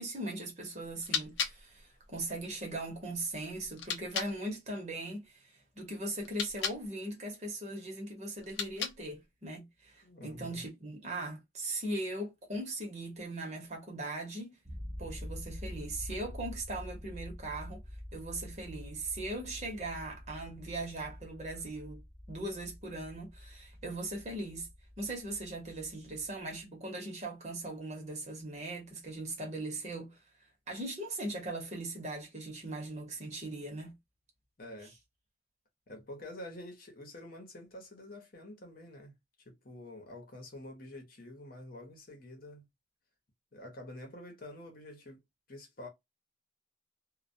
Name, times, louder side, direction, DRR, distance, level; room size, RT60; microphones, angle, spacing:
voice 1, 0.0-14.5 15.0-17.8 18.1-22.0 22.3-24.7 25.0-30.2 30.7-33.9, right 2 dB, 40° right, 0.9 m, -39 dB
sound 1, 0.8-4.4 6.2-6.9 8.4-9.2, left 6 dB, 85° left, 0.5 m, -38 dB
voice 2, 10.0-10.6 34.6-34.9 35.9-39.1 39.5-42.6 43.5-45.2 45.5-45.9, left 1 dB, 50° left, 0.8 m, -47 dB
sound 2, 14.7-26.6, equal, 10° right, 0.6 m, -47 dB
2.2 x 2.2 x 2.6 m
head